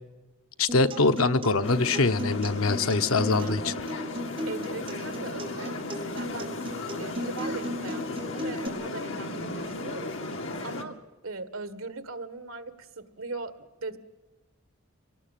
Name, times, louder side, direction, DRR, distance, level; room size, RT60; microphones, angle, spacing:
voice 1, 0.6-3.6, left 3 dB, 85° left, 9 dB, 1.0 m, -23 dB
Acoustic guitar, 0.7-8.7, equal, 25° right, 3.6 m, -37 dB
sound 1, 1.6-10.8, left 2 dB, 65° left, 2.3 m, -36 dB
voice 2, 3.2-3.6 4.5-6.6 7.0-10.1 10.6-11.0 11.2-14.0, right 3 dB, 75° right, 12 dB, 1.8 m, -39 dB
25.5 x 18.5 x 9.2 m, 1.2 s
head